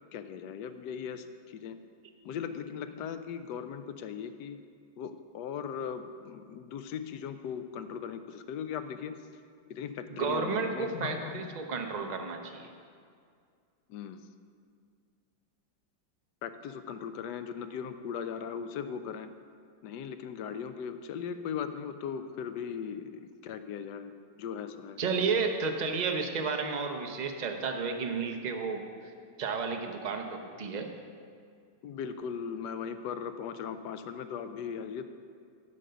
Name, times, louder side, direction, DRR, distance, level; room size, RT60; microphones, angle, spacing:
voice 1, 0.1-1.8 2.2-4.6 5.0-9.3 9.7-11.5 13.9-14.2 16.4-19.3 19.8-25.0 31.8-35.1, left 7 dB, 75° left, 10 dB, 1.1 m, -38 dB
voice 2, 10.1-12.7 25.0-28.8 29.4-30.9, right 4 dB, 60° right, 4 dB, 0.4 m, -32 dB
15.0 x 5.1 x 6.7 m, 2.2 s
omnidirectional pair, 2.0 m